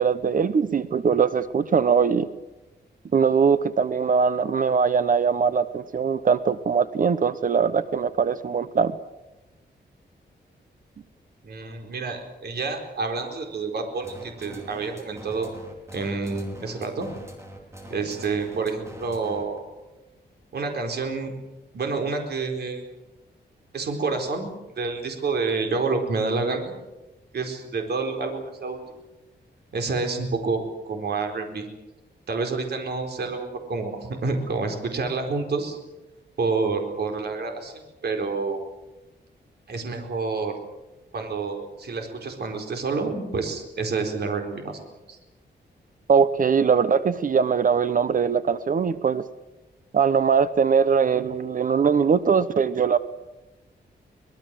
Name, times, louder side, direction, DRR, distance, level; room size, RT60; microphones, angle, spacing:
voice 1, 0.0-2.3 3.1-8.9 46.1-49.3 49.9-53.0, right 6 dB, 50° right, 14 dB, 0.9 m, -21 dB
voice 2, 11.4-15.5 15.9-17.1 17.9-19.7 20.5-21.3 21.7-22.9 23.7-24.5 24.8-26.8 27.3-28.8 29.7-31.7 32.3-35.8 36.4-38.6 39.7-40.6 41.1-45.2, right 4 dB, 65° right, 4 dB, 4.4 m, -28 dB
sound 1, 14.0-19.6, equal, 15° right, 4.9 m, -42 dB
24.5 x 20.5 x 7.7 m, 1.0 s
wide cardioid pair, 150°, 18 cm